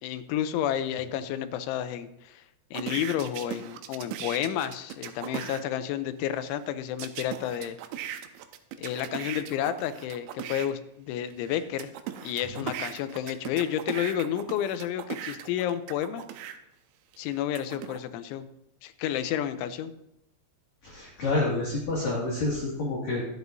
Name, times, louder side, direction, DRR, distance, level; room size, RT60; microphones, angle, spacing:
voice 1, 0.0-2.5 2.7-7.8 8.8-11.9 12.2-16.2 17.2-18.5 18.8-19.9, left 10 dB, 90° left, 11 dB, 3.1 m, -31 dB
sound 1, 2.7-5.6 7.0-10.7 11.3-16.6 17.1-18.0, right 11 dB, 90° right, 3.0 m, -38 dB
voice 2, 20.8-23.2, left 2 dB, 45° left, -5 dB, 2.9 m, -28 dB
23.5 x 8.2 x 2.7 m, 0.82 s
omnidirectional pair, 5.3 m